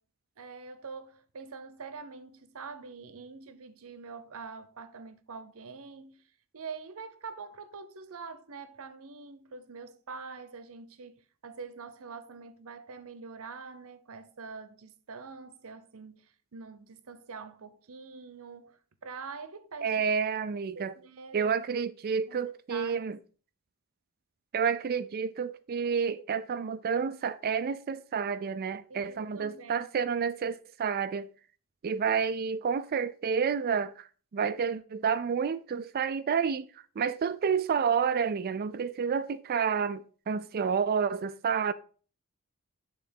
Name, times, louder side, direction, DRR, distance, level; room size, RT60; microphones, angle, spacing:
voice 1, 0.4-6.2 6.5-11.1 11.4-20.0 20.7-21.5 22.3-23.1 28.9-29.9, right 4 dB, 65° right, 0.8 m, -45 dB
voice 2, 19.8-20.9 21.3-23.2 24.5-31.3 31.8-36.7 37.0-41.7, right 6 dB, 45° right, 0.4 m, -29 dB
8.6 x 3.9 x 5.2 m
head